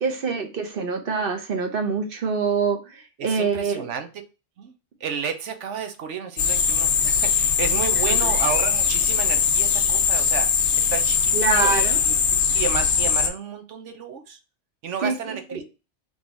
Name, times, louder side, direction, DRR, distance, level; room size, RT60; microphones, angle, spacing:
voice 1, 0.0-3.9 8.1-8.3 11.3-12.0 15.0-15.6, right 5 dB, 55° right, 0.9 m, -25 dB
voice 2, 3.2-4.1 4.6-4.7 5.0-10.5 10.9-11.3 11.6-11.7 12.1-14.4 14.8-15.6, right 7 dB, 85° right, 1.1 m, -31 dB
sound 1, 6.4-13.3, left 6 dB, 70° left, 1.0 m, -21 dB
3.9 x 3.1 x 3.9 m
omnidirectional pair, 1.2 m